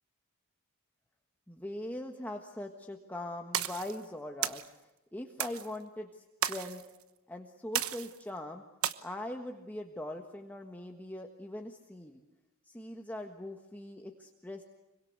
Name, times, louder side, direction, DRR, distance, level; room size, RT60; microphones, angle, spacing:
voice 1, 1.5-4.7 5.1-6.8 7.3-8.6 9.0-12.2 12.7-14.6, left 1 dB, 10° left, 2 dB, 1.5 m, -41 dB
sound 1, 3.5-3.9 4.4-4.7 5.4-5.7 6.4-6.8 7.7-8.2 8.8-8.9, right 10 dB, 85° right, 1.1 m, -33 dB
25.5 x 24.0 x 8.2 m, 1.0 s
head